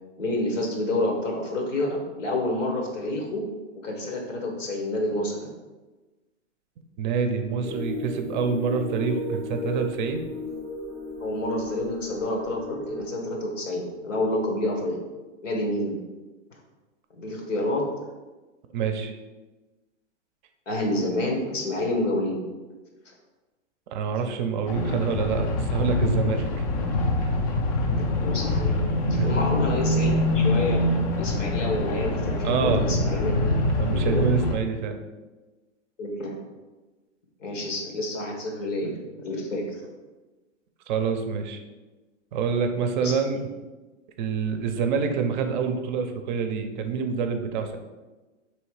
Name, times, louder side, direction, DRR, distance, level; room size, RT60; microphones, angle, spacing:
voice 1, 0.2-3.4 3.7-5.5 11.2-15.0 15.4-15.9 17.1-17.8 20.7-22.4 28.2-28.7 29.1-30.8 31.1-33.3 33.9-34.3 36.0-36.3 37.4-39.0 39.2-39.8 43.0-43.1, left 1 dB, 90° left, 1 dB, 1.3 m, -28 dB
voice 2, 7.0-10.2 18.7-19.2 23.9-26.6 27.2-27.3 29.2-29.3 32.4-32.9 33.8-35.0 40.9-41.6 42.3-43.5 44.2-47.8, right 6 dB, 40° right, 6 dB, 0.5 m, -27 dB
sound 1, 7.6-13.5, left 1 dB, ahead, 0.7 m, -35 dB
sound 2, 24.7-34.6, left 1 dB, 30° left, 0.4 m, -24 dB
3.2 x 3.1 x 4.7 m, 1.2 s
hypercardioid pair, 130°, 36 cm